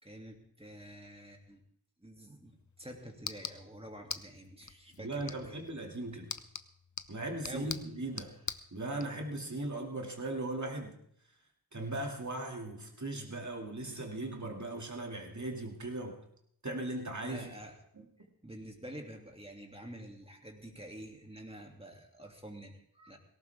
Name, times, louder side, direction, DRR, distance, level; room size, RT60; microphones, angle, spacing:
voice 1, 0.0-1.6 2.0-5.6 7.4-7.8 8.1-8.3 17.2-17.7 18.4-23.2, right 1 dB, 15° right, 1 dB, 2.7 m, -48 dB
sound 1, 2.4-9.1, left 5 dB, 50° left, 0.8 m, -45 dB
voice 2, 5.0-6.3 7.1-8.3 8.7-11.0 11.7-16.2 16.6-17.5 18.0-18.1, right 2 dB, 50° right, 2 dB, 2.6 m, -38 dB
18.0 x 17.5 x 3.6 m, 0.68 s
wide cardioid pair, 60°, 38 cm